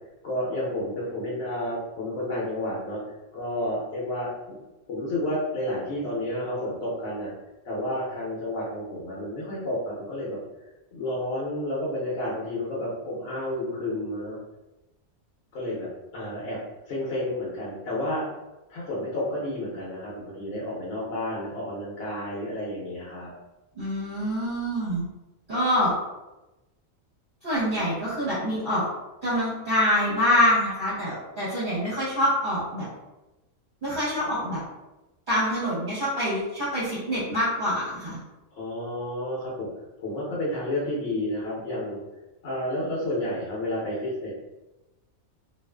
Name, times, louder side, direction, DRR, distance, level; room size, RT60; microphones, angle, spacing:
voice 1, 0.2-3.0 3.3-4.6 4.9-7.3 7.6-10.4 10.9-14.4 15.5-16.6 16.8-18.3 18.7-23.3 38.6-39.7 40.0-42.0 42.4-44.3, left 1 dB, 65° left, -6 dB, 1.0 m, -31 dB
voice 2, 23.8-25.1 25.5-25.9 27.4-28.8 29.2-32.9 33.8-34.6 35.3-38.2, equal, 45° right, -11 dB, 0.9 m, -25 dB
2.4 x 2.4 x 2.2 m, 1.0 s
omnidirectional pair, 1.4 m